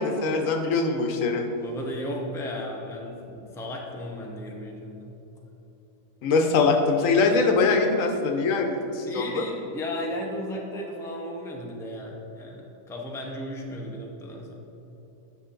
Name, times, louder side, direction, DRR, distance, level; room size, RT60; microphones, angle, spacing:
voice 1, 0.0-1.5 6.2-9.5, left 4 dB, 85° left, 4 dB, 1.1 m, -23 dB
voice 2, 1.6-5.2 9.0-14.5, left 1 dB, 5° left, -1 dB, 0.5 m, -35 dB
8.6 x 5.7 x 3.8 m, 2.9 s
omnidirectional pair, 1.4 m